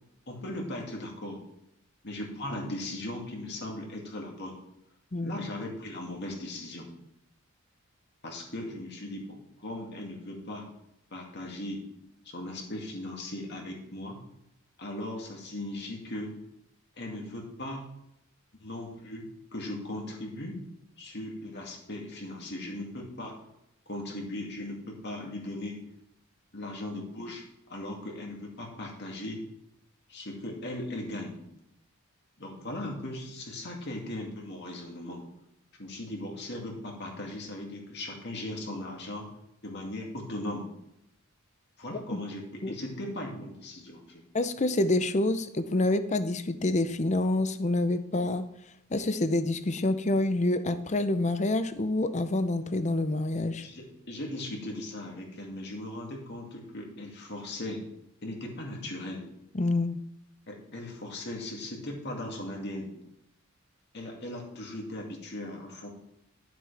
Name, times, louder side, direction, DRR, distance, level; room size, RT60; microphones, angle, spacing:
voice 1, 0.3-1.4 2.0-4.5 5.2-6.9 8.2-10.6 11.1-11.8 12.2-14.2 14.8-16.4 17.0-17.8 18.6-20.6 21.0-23.3 23.9-25.8 26.5-27.4 27.7-29.4 30.1-31.4 32.4-35.2 35.8-39.3 39.6-40.7 41.8-44.2 53.6-57.8 58.2-59.2 60.5-62.9 63.9-65.9, left 1 dB, 50° left, 0 dB, 2.4 m, -38 dB
voice 2, 44.3-48.5 48.9-53.6 59.5-60.0, left 2 dB, 35° left, 11 dB, 0.6 m, -27 dB
12.0 x 7.5 x 3.4 m, 0.78 s
head